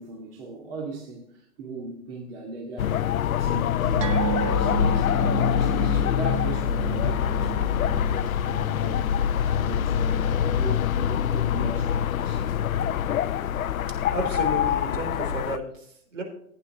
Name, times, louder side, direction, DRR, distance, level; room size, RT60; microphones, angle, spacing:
voice 1, 0.0-3.0 3.4-4.1 4.4-8.4 8.8-12.5, right 2 dB, 40° right, -1 dB, 2.4 m, -38 dB
sound 1, 2.8-15.6, left 9 dB, 70° left, 0.7 m, -24 dB
sound 2, 4.0-10.8 11.1-11.3 11.7-11.8, right 7 dB, 25° right, 0.6 m, -34 dB
voice 2, 14.1-16.2, right 1 dB, 60° right, 4 dB, 3.7 m, -32 dB
15.0 x 9.8 x 3.1 m, 0.70 s
hypercardioid pair, 135°, 43 cm